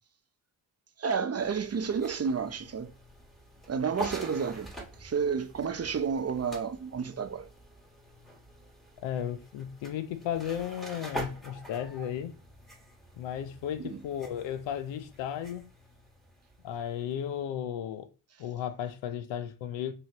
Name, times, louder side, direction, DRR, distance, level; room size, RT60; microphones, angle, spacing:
voice 1, 1.0-2.9 3.7-4.7 5.0-7.5 13.8-14.0, right 6 dB, 35° right, 0.7 m, -31 dB
sound 1, 1.4-17.4, equal, ahead, 1.4 m, -45 dB
voice 2, 9.0-12.3 13.2-15.7 16.6-18.1 18.4-19.9, left 9 dB, 85° left, 0.6 m, -34 dB
5.5 x 2.9 x 2.9 m
supercardioid pair, 50°, 44 cm